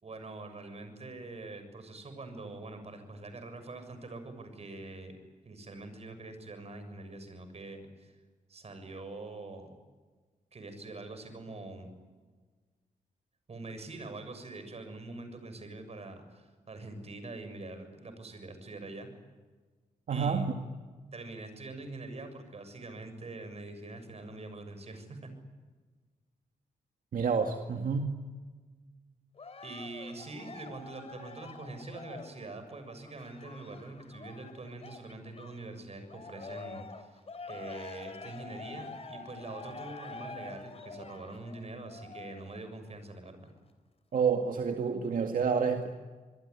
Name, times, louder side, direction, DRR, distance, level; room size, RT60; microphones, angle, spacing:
voice 1, 0.0-5.1 5.4-8.1 8.5-9.7 10.5-11.9 13.5-19.1 20.1-20.5 21.1-25.3 29.6-37.2 37.5-43.5, right 2 dB, 45° right, 9 dB, 6.8 m, -44 dB
voice 2, 20.1-20.5 27.1-28.2 44.1-45.9, right 6 dB, 70° right, 4 dB, 2.1 m, -29 dB
Cheering, 29.4-35.7 36.1-42.7 43.3-43.4, left 3 dB, 45° left, 3.2 m, -46 dB
27.0 x 22.0 x 9.8 m, 1.4 s
wide cardioid pair, 100°, 14 cm